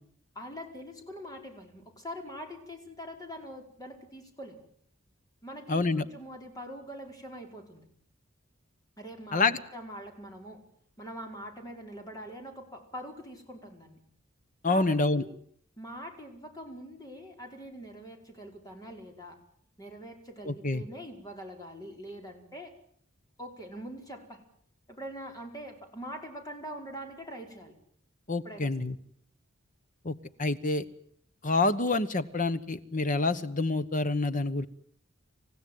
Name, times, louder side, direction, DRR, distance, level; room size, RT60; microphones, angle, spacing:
voice 1, 0.3-4.6 5.4-7.9 9.0-10.6 11.0-14.0 14.6-15.3 15.8-19.4 19.8-22.7 23.4-24.4 24.9-27.8 28.4-28.9, equal, 20° left, 3 dB, 5.0 m, -43 dB
voice 2, 5.7-6.0 9.3-9.6 14.6-15.2 20.5-20.8 28.3-29.0 30.0-30.1 30.4-30.8 31.4-34.7, left 3 dB, 40° left, 12 dB, 1.1 m, -27 dB
27.5 x 16.0 x 9.5 m, 0.64 s
head